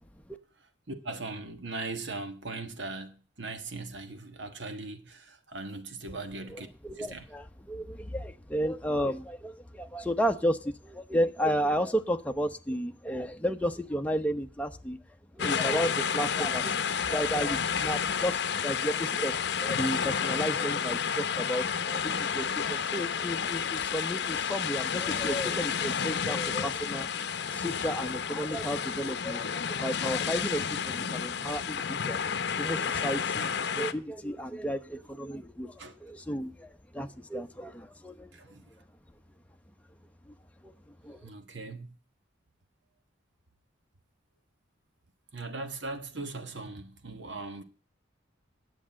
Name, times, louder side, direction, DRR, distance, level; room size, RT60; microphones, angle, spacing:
voice 1, 0.9-6.7 7.0-7.2 35.8-35.9 38.3-38.6 41.2-42.0 45.3-47.6, right 3 dB, 65° right, 1.4 m, -39 dB
voice 2, 6.5-15.0 15.3-27.1 27.5-32.3 32.6-38.5 40.2-40.3 40.6-40.7 41.0-41.3, equal, 5° left, 0.8 m, -33 dB
sound 1, 15.4-33.9, left 7 dB, 55° left, 0.8 m, -31 dB
10.0 x 8.0 x 8.6 m
head